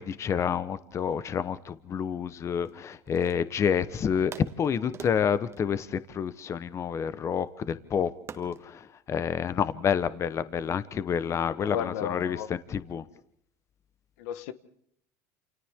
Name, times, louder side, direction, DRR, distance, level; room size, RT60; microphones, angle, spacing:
voice 1, 0.0-4.3 4.6-8.1 8.4-13.0, left 7 dB, 35° left, 1.0 m, -29 dB
sound 1, 2.6-3.8 4.3-6.8 8.3-8.7, right 7 dB, 30° right, 1.4 m, -47 dB
voice 2, 11.6-12.5 14.2-14.5, left 9 dB, 85° left, 1.2 m, -33 dB
28.5 x 28.5 x 3.7 m
supercardioid pair, 115°, 9 cm